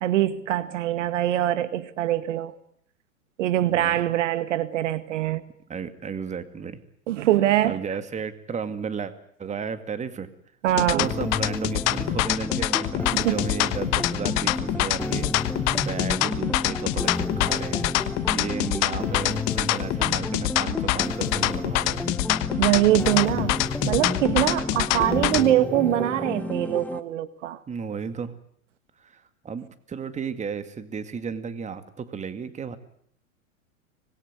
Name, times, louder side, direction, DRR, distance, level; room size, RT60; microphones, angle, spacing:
voice 1, 0.0-2.5 3.4-5.4 7.1-7.8 10.6-11.1 13.1-13.4 22.6-27.6, right 13 dB, 60° right, 1.8 m, -23 dB
voice 2, 5.7-6.8 7.2-7.3 7.6-9.1 9.4-10.3 10.8-15.3 15.7-17.9 18.3-22.2 27.7-28.4 29.0-32.8, right 6 dB, 15° right, 2.2 m, -34 dB
sound 1, 10.7-25.5, left 18 dB, 40° left, 1.3 m, -25 dB
sound 2, 11.0-27.0, left 2 dB, 5° left, 1.3 m, -32 dB
25.5 x 20.5 x 9.7 m
hypercardioid pair, 105°, 42 cm